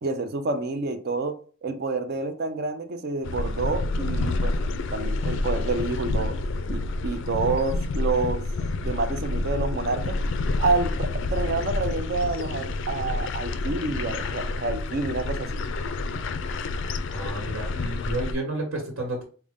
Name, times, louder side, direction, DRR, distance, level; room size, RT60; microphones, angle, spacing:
voice 1, 0.0-4.6 4.9-8.4 8.8-10.2 10.6-15.5, right 3 dB, 50° right, 0.5 m, -28 dB
sound 1, 3.2-18.3, left 2 dB, 65° left, 0.4 m, -28 dB
voice 2, 17.1-19.2, right 1 dB, 75° right, 1.3 m, -31 dB
5.0 x 2.1 x 3.5 m
head